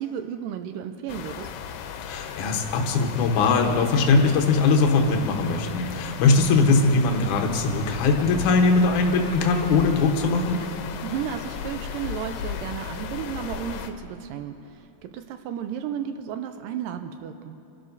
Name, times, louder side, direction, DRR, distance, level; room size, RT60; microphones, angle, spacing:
voice 1, 0.0-1.5 11.0-17.6, right 9 dB, 85° right, 8 dB, 2.0 m, -33 dB
sound 1, 1.1-13.9, left 8 dB, 90° left, 2.7 m, -36 dB
voice 2, 2.0-10.6, left 3 dB, 65° left, 2 dB, 2.3 m, -21 dB
28.0 x 12.0 x 2.7 m, 2.9 s
omnidirectional pair, 4.4 m